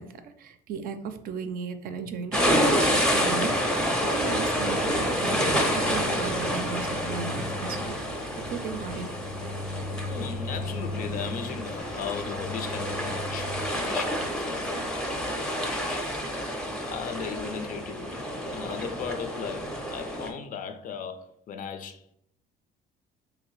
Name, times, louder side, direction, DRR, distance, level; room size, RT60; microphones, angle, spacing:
voice 1, 0.0-3.5 3.7-5.4 5.7-8.0 8.5-9.1, right 6 dB, 60° right, 0.4 m, -36 dB
sound 1, 2.3-20.3, equal, 5° left, 0.5 m, -29 dB
sound 2, 4.9-13.7, left 2 dB, 90° left, 0.8 m, -38 dB
voice 2, 10.0-16.6 16.9-22.1, left 7 dB, 55° left, 0.4 m, -38 dB
3.0 x 2.7 x 3.1 m
cardioid pair, 110°, 17 cm